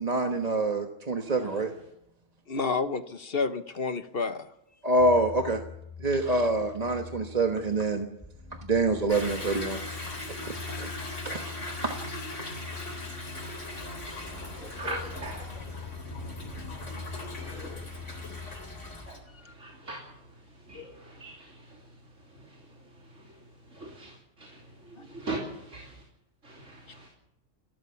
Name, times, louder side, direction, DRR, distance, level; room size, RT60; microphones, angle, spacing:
voice 1, 0.0-1.7 4.8-5.6 6.0-8.1 8.6-9.8 10.8-10.9 11.2-11.4 11.8-12.0, right 2 dB, 30° right, 4 dB, 1.3 m, -26 dB
voice 2, 2.5-4.5 14.6-14.7 25.0-25.1, left 4 dB, 50° left, 10 dB, 1.3 m, -30 dB
sound 1, 5.0-19.1, left 5 dB, 5° left, 3.8 m, -43 dB
Toilet flush / Drip / Trickle dribble, 9.1-19.2, left 1 dB, 70° left, 4.1 m, -40 dB
voice 3, 14.4-15.6 17.4-17.9 19.1-20.2 20.7-21.8 22.3-22.7 23.0-23.4 23.7-26.0 26.4-27.1, right 1 dB, 70° right, 0 dB, 3.4 m, -41 dB
30.0 x 13.5 x 7.1 m, 0.81 s
omnidirectional pair, 1.3 m